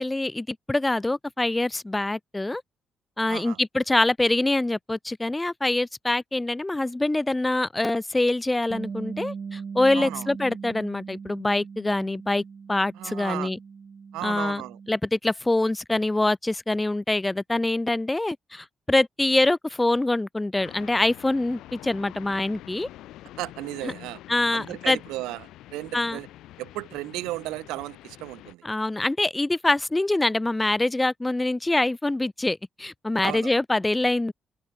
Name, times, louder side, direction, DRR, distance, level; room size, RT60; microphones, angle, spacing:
voice 1, 0.0-2.6 3.2-12.4 12.7-13.6 14.2-14.6 14.9-22.9 23.8-23.9 24.3-25.0 25.9-26.2 28.6-34.3, left 2 dB, 20° left, 1.2 m, -25 dB
voice 2, 3.3-3.6 9.9-10.3 13.0-13.5 14.1-14.8 23.4-24.2 24.5-26.3 26.6-28.6 33.2-33.6, right 19 dB, 80° right, 2.8 m, -35 dB
Bass guitar, 8.7-15.0, right 5 dB, 45° right, 1.9 m, -39 dB
sound 1, 20.6-28.5, left 15 dB, 75° left, 2.7 m, -46 dB
hypercardioid pair, 45°, 0 cm